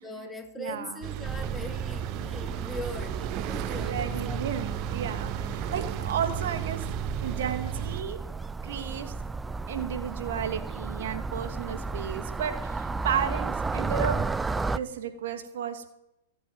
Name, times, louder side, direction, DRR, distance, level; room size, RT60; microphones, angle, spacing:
voice 1, 0.0-4.4, left 2 dB, 5° left, 3 dB, 3.4 m, -40 dB
voice 2, 0.6-1.0 3.8-6.8 7.2-8.2 8.6-9.1 9.7-14.3 14.7-15.9, right 8 dB, 65° right, 8 dB, 2.6 m, -33 dB
sound 1, 1.0-8.0, right 13 dB, 45° right, 1.1 m, -35 dB
sound 2, 1.2-14.8, right 3 dB, 10° right, 0.7 m, -34 dB
28.5 x 11.5 x 9.3 m, 0.87 s
hypercardioid pair, 110°, 0 cm